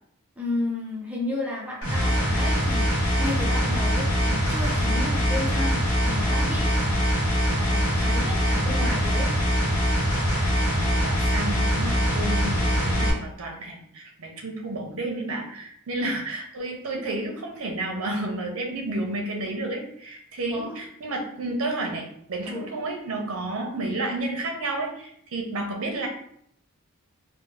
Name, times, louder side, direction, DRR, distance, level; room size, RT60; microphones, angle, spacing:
voice 1, 0.4-9.3 16.0-16.2 20.5-20.7 22.5-22.7, left 2 dB, 5° right, -4 dB, 0.4 m, -33 dB
sound 1, 1.8-13.1, equal, 65° left, 0.9 m, -23 dB
voice 2, 10.6-26.1, right 2 dB, 65° right, 2 dB, 0.6 m, -31 dB
2.7 x 2.0 x 3.1 m, 0.69 s
head